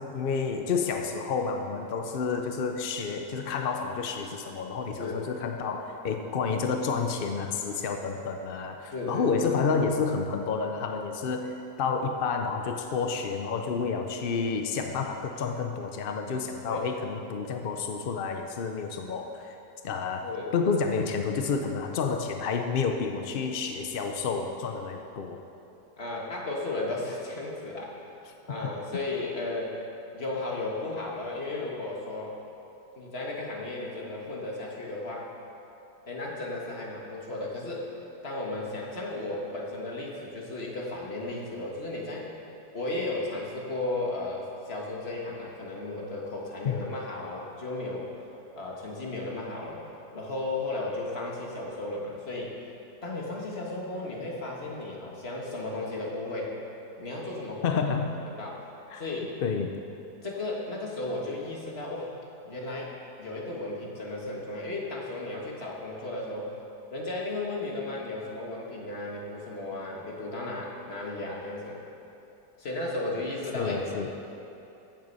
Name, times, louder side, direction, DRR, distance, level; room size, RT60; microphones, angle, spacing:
voice 1, 0.0-19.6 19.8-25.4 46.7-46.9 57.6-58.2 58.9-59.0 59.4-59.8 73.5-74.2, left 5 dB, 60° left, 5 dB, 0.5 m, -30 dB
voice 2, 8.9-9.4 16.7-16.8 20.2-20.5 26.0-27.9 28.5-29.7 30.1-32.3 33.0-35.3 36.1-37.9 38.2-42.3 42.7-48.1 48.6-49.8 50.1-52.6 53.0-56.5 57.0-57.7 58.4-58.7 58.9-59.3 60.2-62.1 62.5-66.5 66.9-71.8 72.6-73.9, left 2 dB, 40° left, -3 dB, 1.9 m, -34 dB
15.0 x 7.9 x 5.5 m, 2.9 s
omnidirectional pair, 1.8 m